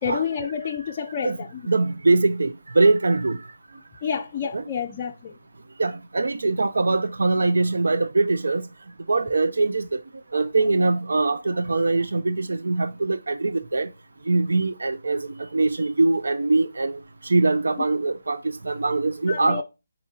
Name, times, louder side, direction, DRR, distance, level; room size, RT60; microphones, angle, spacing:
voice 1, 0.0-1.6 4.0-5.3 19.3-19.6, left 7 dB, 25° left, 0.4 m, -29 dB
voice 2, 1.7-3.4 4.5-4.6 5.8-8.7 9.1-9.9 10.3-13.9 14.3-18.4 18.6-19.6, right 3 dB, 85° right, 0.4 m, -22 dB
8.3 x 4.2 x 2.7 m
hypercardioid pair, 165°, 0 cm